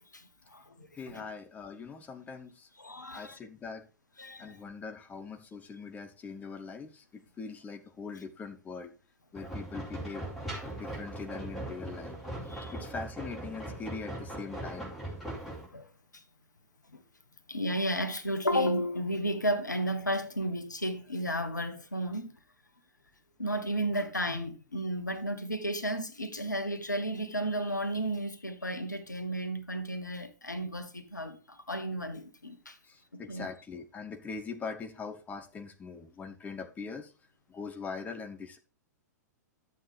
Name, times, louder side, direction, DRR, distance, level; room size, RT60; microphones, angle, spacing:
voice 1, 0.1-1.2 2.8-3.4 4.2-4.6 12.5-12.7 15.7-15.9 16.1-16.2 16.9-17.0 17.5-22.4 23.4-32.8 33.3-33.5, equal, 85° left, 1.2 m, -33 dB
voice 2, 1.0-2.7 3.1-3.9 4.4-8.9 9.3-10.3 10.8-12.2 12.7-14.9 32.9-37.1 37.5-38.6, left 5 dB, 15° left, 0.9 m, -42 dB
sound 1, 9.3-15.7, right 1 dB, ahead, 4.3 m, -40 dB
11.0 x 7.6 x 3.3 m
figure-of-eight pair, 105°, 10 cm